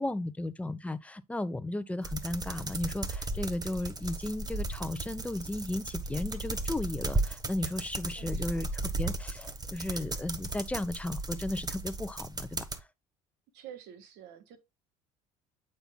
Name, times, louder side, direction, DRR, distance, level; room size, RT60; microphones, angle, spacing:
voice 1, 0.0-12.7, left 1 dB, 5° left, 0.8 m, -35 dB
sound 1, 2.0-12.8, right 2 dB, 20° right, 1.3 m, -35 dB
voice 2, 8.1-8.6 13.5-14.6, right 9 dB, 70° right, 1.7 m, -49 dB
8.0 x 5.5 x 2.2 m
hypercardioid pair, 65°, 18 cm